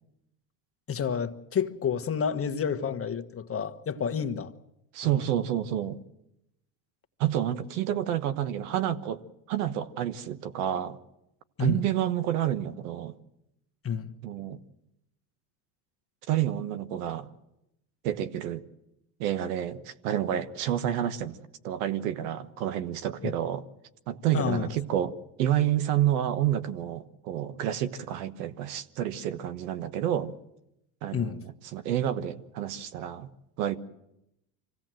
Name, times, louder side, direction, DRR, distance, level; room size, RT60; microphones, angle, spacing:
voice 1, 0.9-4.5 11.6-11.8 13.8-14.1 23.2-23.3 24.3-24.7 31.1-31.4, left 7 dB, 30° left, 1.4 m, -29 dB
voice 2, 4.9-6.0 7.2-9.2 9.5-11.0 11.6-13.2 14.2-14.6 16.3-17.3 18.0-18.6 19.2-21.4 21.6-23.6 24.1-30.3 31.0-33.3 33.6-33.8, right 11 dB, 85° right, 1.3 m, -29 dB
25.0 x 16.5 x 7.7 m
supercardioid pair, 95°, 43 cm